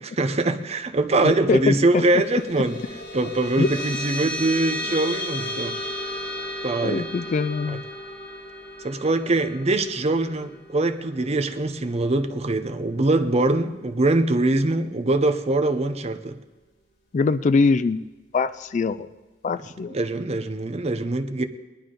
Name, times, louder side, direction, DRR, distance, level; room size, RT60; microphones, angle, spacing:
voice 1, 0.2-2.8 3.1-5.8 6.6-7.1 7.7-7.8 8.8-16.4 19.9-21.4, right 2 dB, 35° right, 8 dB, 0.7 m, -23 dB
voice 2, 1.2-2.0 3.6-3.7 6.8-7.8 17.1-18.0 18.3-19.1 19.4-20.0, left 4 dB, 40° left, 14 dB, 0.4 m, -22 dB
sound 1, 1.9-12.7, left 1 dB, 60° left, 4.6 m, -34 dB
19.5 x 11.5 x 3.9 m, 1.2 s
head